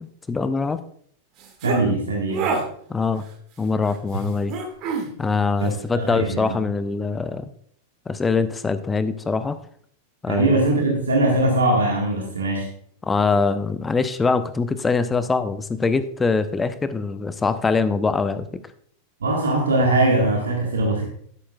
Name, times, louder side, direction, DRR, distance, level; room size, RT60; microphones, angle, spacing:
voice 1, 0.3-0.8 1.8-2.0 2.9-3.2 3.6-4.6 5.2-7.5 8.1-9.6 10.2-10.6 13.0-18.5, left 4 dB, 15° left, 13 dB, 0.7 m, -23 dB
sound 1, 1.4-1.8 2.3-2.6 4.5-5.1, right 5 dB, 40° right, 1.9 m, -26 dB
voice 2, 1.6-2.5 5.6-6.6 10.3-12.7 19.2-21.1, right 2 dB, 70° right, 1 dB, 1.7 m, -21 dB
11.5 x 11.0 x 2.4 m, 0.62 s
figure-of-eight pair, 90°, 0 cm